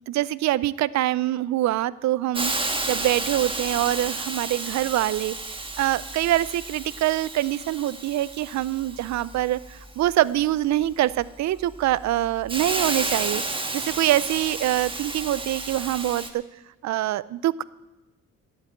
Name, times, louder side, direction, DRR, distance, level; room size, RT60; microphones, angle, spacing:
voice 1, 0.1-5.4 5.8-13.4 13.7-16.4 16.8-17.6, right 14 dB, 65° right, 19 dB, 0.5 m, -24 dB
Hiss, 2.3-16.3, right 2 dB, 15° right, 1.4 m, -32 dB
11.5 x 8.0 x 8.8 m, 1.1 s
cardioid pair, 90°, 30 cm